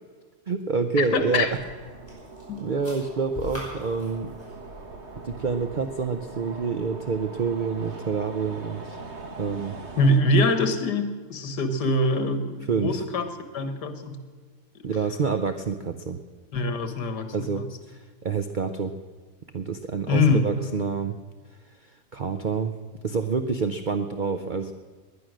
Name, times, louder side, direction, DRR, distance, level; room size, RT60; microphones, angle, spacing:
voice 1, 0.5-1.5 2.6-4.3 5.2-9.0 9.4-9.8 12.7-13.0 14.8-16.2 17.3-18.9 19.5-21.2 22.1-22.7 23.0-24.7, right 5 dB, 65° right, 8 dB, 0.4 m, -27 dB
sound 1, 0.8-5.9, left 2 dB, 15° left, 5.9 m, -45 dB
voice 2, 1.0-1.5 2.5-2.6 10.0-14.2 16.5-17.7 20.1-20.5, left 2 dB, 80° left, 9 dB, 1.9 m, -24 dB
sound 2, 1.2-10.2, right 3 dB, 45° right, 1.6 m, -42 dB
19.5 x 10.5 x 6.3 m, 1.4 s
omnidirectional pair, 1.8 m